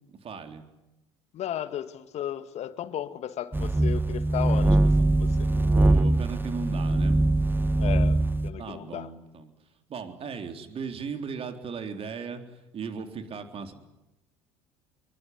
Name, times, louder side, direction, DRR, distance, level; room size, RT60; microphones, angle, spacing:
voice 1, 0.2-0.6 5.5-7.2 8.6-9.5 9.9-13.7, right 5 dB, 40° right, 7 dB, 3.7 m, -37 dB
voice 2, 1.3-5.5 7.8-9.1, left 11 dB, 50° left, 12 dB, 2.0 m, -35 dB
sound 1, 3.5-8.5, right 2 dB, 15° right, 1.5 m, -22 dB
24.0 x 23.0 x 9.7 m, 0.93 s
hypercardioid pair, 65°, 15 cm